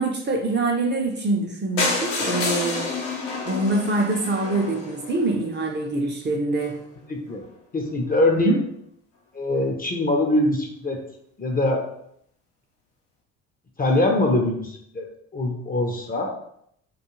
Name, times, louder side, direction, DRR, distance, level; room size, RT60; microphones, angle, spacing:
voice 1, 0.0-2.9 3.5-6.8 8.4-8.6, right 2 dB, 30° right, 2 dB, 0.6 m, -24 dB
sound 1, 1.8-5.7 6.3-6.4 6.6-6.8 7.0-7.1 7.3-7.4, left 3 dB, 80° left, 0.7 m, -28 dB
voice 2, 7.1-7.4 7.7-8.5 9.3-11.0 11.4-11.9 13.8-15.1 15.3-16.3, left 2 dB, 25° left, 1 dB, 0.6 m, -23 dB
2.3 x 2.3 x 3.0 m, 0.72 s
hypercardioid pair, 55°, 36 cm